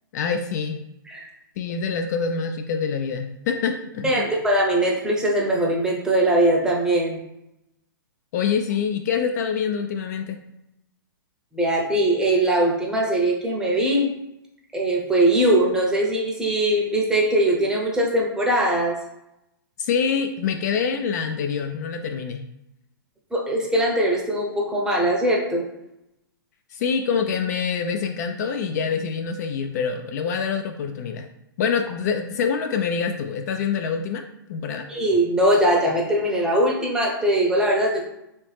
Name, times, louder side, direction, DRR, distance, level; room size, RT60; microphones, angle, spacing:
voice 1, 0.1-0.8 1.6-4.3 8.3-10.4 19.8-22.5 26.7-31.3 31.6-34.2 34.5-34.9, left 6 dB, 50° left, 6 dB, 0.3 m, -25 dB
voice 2, 4.0-7.2 11.5-14.1 14.7-19.0 23.3-25.7 34.9-38.0, right 1 dB, 5° right, -2 dB, 0.6 m, -21 dB
3.0 x 2.7 x 3.3 m, 0.86 s
hypercardioid pair, 135°, 12 cm